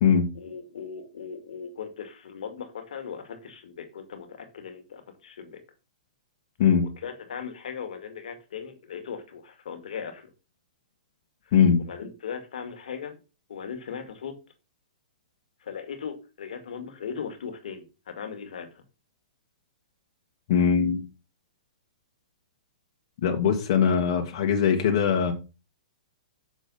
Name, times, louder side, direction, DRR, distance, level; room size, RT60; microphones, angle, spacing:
voice 1, 0.3-5.6 6.8-10.3 11.8-13.2 13.5-14.4 15.6-18.8, left 7 dB, 70° left, 2.2 m, -38 dB
voice 2, 11.5-11.8 20.5-21.0 23.2-25.3, left 7 dB, 50° left, 2.0 m, -21 dB
7.1 x 6.2 x 5.6 m
hypercardioid pair, 140°, 4 cm